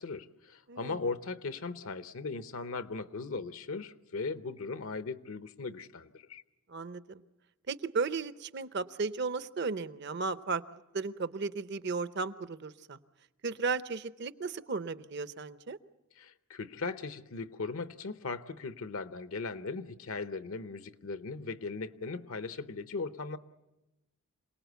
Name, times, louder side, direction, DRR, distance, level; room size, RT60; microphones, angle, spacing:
voice 1, 0.0-6.4 16.2-23.4, left 4 dB, 75° left, 12 dB, 0.8 m, -38 dB
voice 2, 6.7-7.2 7.7-13.0 13.4-15.8, right 4 dB, 50° right, 14 dB, 0.7 m, -35 dB
27.5 x 19.0 x 8.1 m, 1.0 s
head